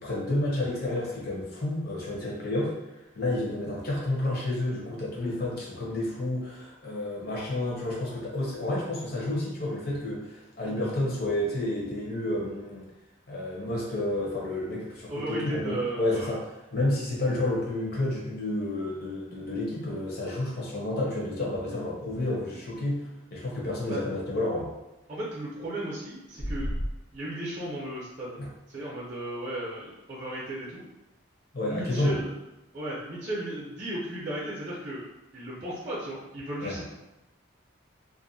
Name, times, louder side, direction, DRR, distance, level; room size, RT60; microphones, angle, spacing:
voice 1, 0.0-2.7 3.1-12.8 13.3-16.4 16.7-24.7 28.4-28.5 31.5-32.2 36.6-36.8, left 1 dB, 50° left, -4 dB, 0.7 m, -30 dB
voice 2, 15.1-16.4 23.9-24.0 25.1-26.7 27.1-28.4 28.7-30.9 31.6-32.3 32.7-35.1 35.3-36.9, right 1 dB, 35° right, -6 dB, 0.6 m, -35 dB
sound 1, 26.4-27.0, equal, 90° left, 0.8 m, -31 dB
2.5 x 2.2 x 2.6 m, 0.95 s
head